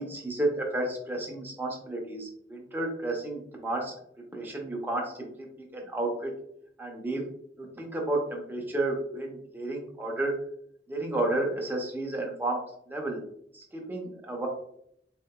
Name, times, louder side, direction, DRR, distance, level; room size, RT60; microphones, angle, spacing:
voice 1, 0.0-3.9 4.3-6.3 6.8-7.2 7.6-10.3 10.9-12.6 12.9-13.2 13.5-14.5, right 2 dB, 10° right, 0 dB, 0.5 m, -32 dB
3.7 x 2.8 x 2.2 m, 0.71 s
head